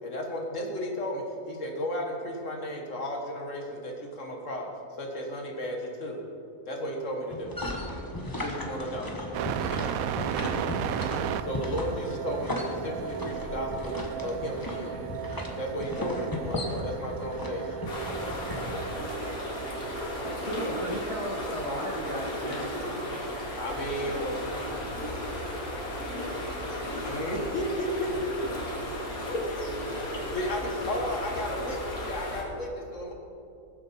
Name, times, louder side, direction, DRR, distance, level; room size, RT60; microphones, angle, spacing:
voice 1, 0.0-4.7 5.0-6.2 6.7-7.6 8.4-9.1 11.4-13.9 14.2-14.9 15.6-17.9 23.6-24.3 27.0-28.3 29.3-29.4 30.3-33.1, equal, 60° left, 1 dB, 1.8 m, -34 dB
sound 1, 7.3-18.9, left 1 dB, 15° left, 1.1 m, -36 dB
sound 2, 9.3-24.8, right 9 dB, 75° right, 1.0 m, -36 dB
sound 3, 17.9-32.4, left 1 dB, 80° left, 2.7 m, -35 dB
voice 2, 20.2-23.1, equal, 25° right, -3 dB, 1.5 m, -35 dB
voice 3, 23.9-25.3 26.5-28.8 29.2-31.0, equal, 50° right, -4 dB, 2.8 m, -46 dB
19.5 x 7.6 x 4.4 m, 2.7 s
omnidirectional pair, 1.5 m